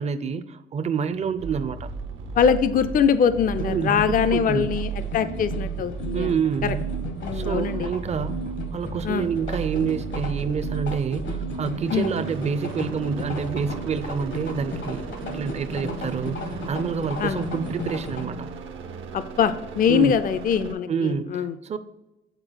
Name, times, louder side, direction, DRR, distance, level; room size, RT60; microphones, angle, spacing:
voice 1, 0.0-1.9 3.6-4.7 6.1-6.8 7.3-18.5 19.9-20.1 20.9-21.8, right 6 dB, 35° right, 11 dB, 0.5 m, -28 dB
sound 1, 1.4-20.7, right 7 dB, 75° right, 0.8 m, -35 dB
voice 2, 2.3-6.7 7.2-7.9 9.0-9.3 11.9-12.1 17.2-17.4 19.1-21.5, left 7 dB, 45° left, 13 dB, 0.4 m, -23 dB
sound 2, 3.6-18.2, left 2 dB, 70° left, 1.0 m, -35 dB
8.1 x 4.2 x 3.8 m, 1.0 s
cardioid pair, 90°, 20 cm